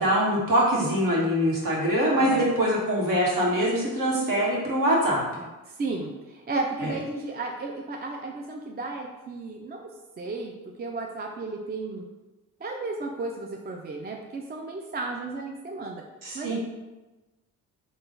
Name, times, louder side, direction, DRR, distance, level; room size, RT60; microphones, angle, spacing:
voice 1, 0.0-5.4 6.8-6.9 16.2-16.5, equal, 50° right, -3 dB, 1.4 m, -23 dB
voice 2, 5.7-9.9 10.2-10.5 10.8-12.0 12.6-16.0 16.3-16.5, right 3 dB, 25° right, 1 dB, 0.4 m, -33 dB
3.7 x 2.4 x 3.8 m, 1.1 s
hypercardioid pair, 50°, 41 cm